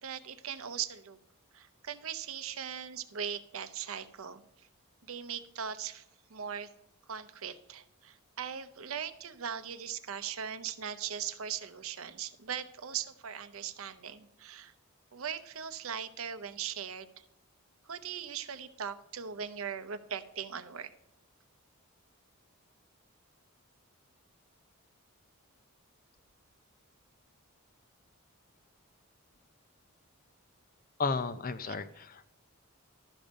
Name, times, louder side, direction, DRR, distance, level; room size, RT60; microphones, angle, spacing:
voice 1, 0.0-1.2 1.5-4.7 5.1-6.0 6.3-6.7 7.1-14.7 15.1-17.2 17.8-20.9 31.6-31.8, right 8 dB, 70° right, 12 dB, 0.7 m, -39 dB
voice 2, 31.0-32.3, left 4 dB, 40° left, 12 dB, 0.6 m, -33 dB
12.5 x 5.2 x 5.2 m, 0.83 s
head